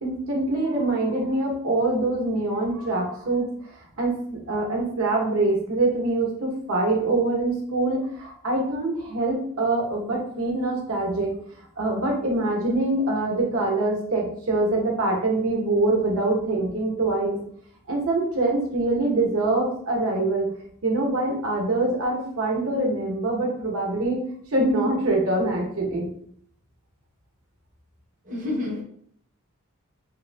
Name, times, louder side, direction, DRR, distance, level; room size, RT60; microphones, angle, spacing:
voice 1, 0.0-4.1 4.5-11.3 11.8-17.4 17.9-20.5 20.8-24.2 24.5-26.1, right 2 dB, 70° right, -1 dB, 0.8 m, -24 dB
voice 2, 28.2-28.8, left 2 dB, 35° right, -1 dB, 0.7 m, -28 dB
3.3 x 2.4 x 2.2 m, 0.63 s
head